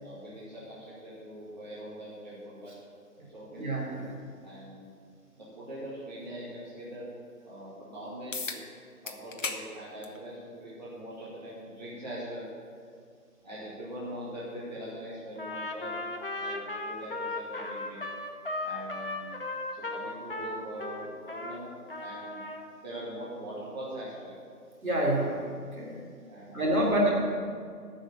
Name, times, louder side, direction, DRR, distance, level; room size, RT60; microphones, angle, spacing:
voice 1, 0.0-2.7 3.3-3.6 4.4-4.9 5.4-7.1 7.4-8.6 9.0-10.3 10.6-12.5 13.4-16.0 16.4-16.5 16.8-18.2 18.6-19.3 19.7-22.4 22.8-24.4 26.2-27.1, right 1 dB, 30° right, -8 dB, 2.2 m, -42 dB
voice 2, 3.5-4.1 24.8-25.4 25.8-26.0 26.5-27.1, right 1 dB, 65° right, -3 dB, 3.5 m, -27 dB
sound 1, 8.3-8.6 9.1-9.6 10.0-10.2 11.3-11.4 16.3-16.4, left 4 dB, 55° left, 1.1 m, -35 dB
Trumpet, 15.4-21.6 21.9-22.7, left 2 dB, 35° left, 0.7 m, -36 dB
9.5 x 6.4 x 8.7 m, 2.2 s
figure-of-eight pair, 165°, 46 cm